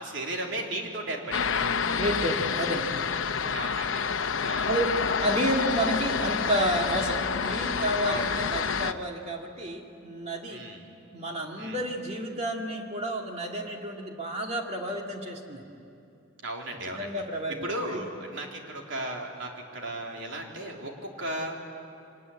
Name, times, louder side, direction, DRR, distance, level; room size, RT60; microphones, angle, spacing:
voice 1, 0.0-1.6 3.5-4.0 4.4-4.8 8.0-8.4 10.5-10.9 11.6-11.8 16.4-17.2 17.6-21.6, right 1 dB, 70° right, 0 dB, 3.5 m, -35 dB
sound 1, 1.3-8.9, left 6 dB, 90° left, 0.8 m, -28 dB
voice 2, 2.0-3.0 3.3-3.6 4.7-10.7 11.1-15.6 16.9-18.1, right 1 dB, 35° right, 1 dB, 2.4 m, -31 dB
25.0 x 19.5 x 10.0 m, 2.6 s
head